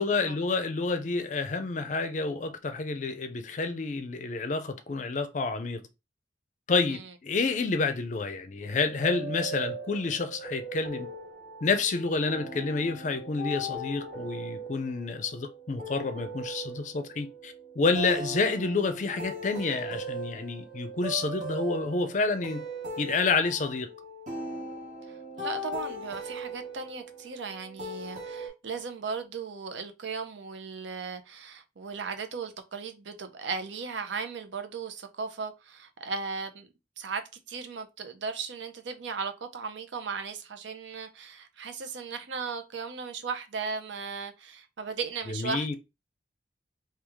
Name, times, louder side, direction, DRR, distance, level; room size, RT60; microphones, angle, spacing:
voice 1, 0.0-5.8 6.7-11.1 11.6-22.6 23.0-23.9 45.3-45.7, left 4 dB, 40° left, 0.4 m, -29 dB
sound 1, 8.6-28.5, right 1 dB, 40° right, 1.0 m, -39 dB
voice 2, 25.4-36.7 37.0-37.2 37.5-45.8, right 5 dB, 85° right, 0.6 m, -36 dB
3.0 x 2.3 x 3.5 m
head